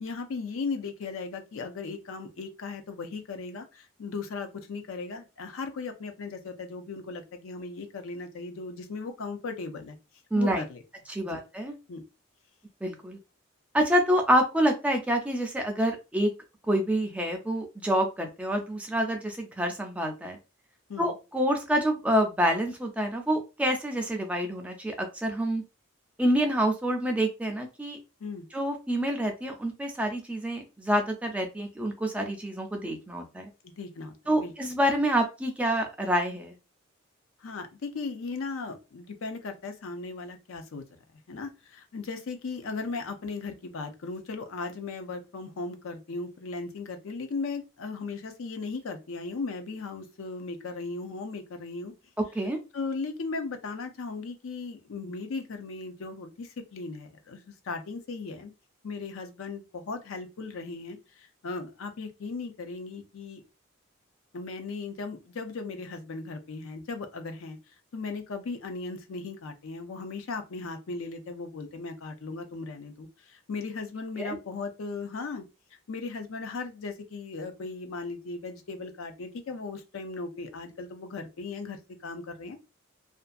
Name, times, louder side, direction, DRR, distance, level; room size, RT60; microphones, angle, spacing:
voice 1, 0.0-10.0 10.4-10.8 11.2-11.3 11.9-12.0 20.9-21.1 28.2-28.5 33.6-34.5 37.4-40.8 41.3-51.9 52.7-58.5 58.8-63.4 64.3-67.6 67.9-75.4 75.9-82.6, left 4 dB, 75° left, 0.5 m, -37 dB
voice 2, 10.3-10.6 11.1-11.7 12.8-13.2 13.7-16.3 16.7-20.4 21.0-25.6 26.2-28.0 28.5-33.5 34.3-36.5 52.3-52.6 74.2-74.4, equal, 5° right, 0.3 m, -27 dB
2.5 x 2.3 x 2.4 m
head